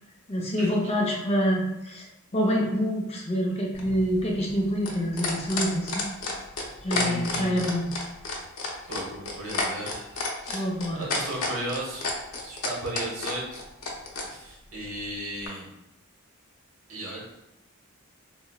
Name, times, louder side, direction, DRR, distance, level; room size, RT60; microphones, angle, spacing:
voice 1, 0.3-2.0 2.3-6.1 6.8-7.9 10.5-11.0, equal, 30° left, -1 dB, 0.4 m, -26 dB
sound 1, 3.7-14.3 15.5-15.6, left 3 dB, 80° left, 0.6 m, -30 dB
voice 2, 6.9-7.6 8.8-10.6 10.9-13.6 14.3-15.7 16.9-17.2, right 1 dB, 75° right, -3 dB, 1.0 m, -36 dB
3.9 x 2.0 x 2.2 m, 0.90 s
head